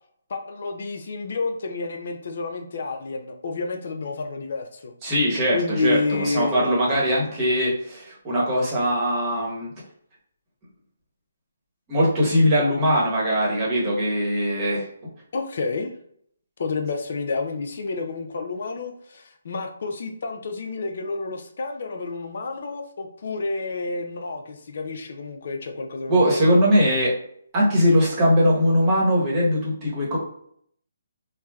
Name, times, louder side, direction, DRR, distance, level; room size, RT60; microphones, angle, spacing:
voice 1, 0.3-4.9 5.5-6.8 15.3-15.9 16.6-26.4, left 3 dB, 55° left, 4 dB, 0.4 m, -30 dB
voice 2, 5.0-9.7 11.9-14.9 26.1-27.2 27.5-30.2, equal, 20° right, -5 dB, 1.0 m, -21 dB
3.2 x 2.0 x 2.3 m, 0.66 s
hypercardioid pair, 160°, 0 cm